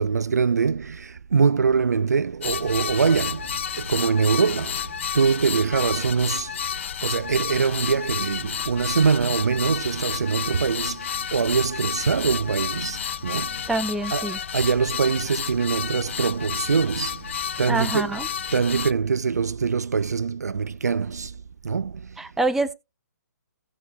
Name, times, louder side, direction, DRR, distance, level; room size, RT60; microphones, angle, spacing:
voice 1, 0.0-4.8 5.1-6.5 7.0-13.6 14.1-17.2 17.6-18.1 18.5-21.3 21.6-22.0, right 5 dB, 65° right, 0.4 m, -23 dB
sound 1, 2.4-18.9, left 8 dB, 40° left, 0.5 m, -31 dB
voice 2, 13.7-14.4 17.7-18.3 22.2-22.7, right 2 dB, 5° right, 0.8 m, -25 dB
16.5 x 5.9 x 2.7 m
figure-of-eight pair, 135°, 10 cm